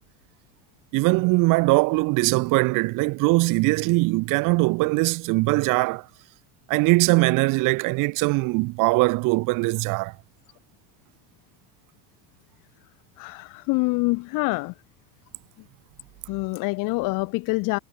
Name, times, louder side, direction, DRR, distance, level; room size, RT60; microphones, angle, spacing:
voice 1, 0.9-6.1 6.7-10.1, right 24 dB, 55° right, 3.9 m, -21 dB
voice 2, 13.2-14.7 15.6-15.7 16.3-17.8, left 26 dB, 55° left, 3.6 m, -26 dB
cardioid pair, 175°, 38 cm